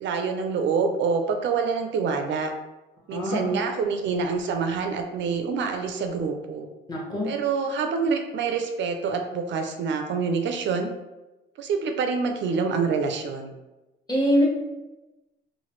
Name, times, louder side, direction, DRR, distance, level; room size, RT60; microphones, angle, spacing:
voice 1, 0.0-2.5 3.1-6.7 7.2-10.9 11.6-13.5, right 5 dB, 70° right, 5 dB, 0.4 m, -26 dB
voice 2, 3.1-3.6 6.9-7.3 14.1-14.5, equal, 20° left, -4 dB, 1.0 m, -24 dB
3.1 x 2.1 x 3.0 m, 1.0 s
cardioid pair, 90°, 20 cm